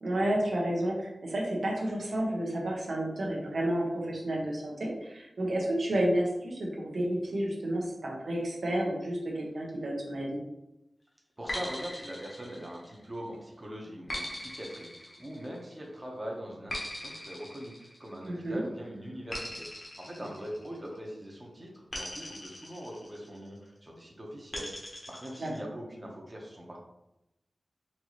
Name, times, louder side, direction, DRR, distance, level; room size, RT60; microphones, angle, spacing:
voice 1, 0.0-10.4 18.3-18.6 25.4-25.5, right 1 dB, 85° right, -2 dB, 1.0 m, -31 dB
voice 2, 11.4-24.7 25.1-26.8, equal, 25° right, -2 dB, 1.0 m, -42 dB
sound 1, 11.5-13.2 14.1-15.8 16.7-18.4 19.3-21.1 21.9-23.5 24.5-25.6, left 1 dB, 45° left, 1.1 m, -40 dB
4.4 x 2.7 x 3.0 m, 0.89 s
wide cardioid pair, 80°, 0 cm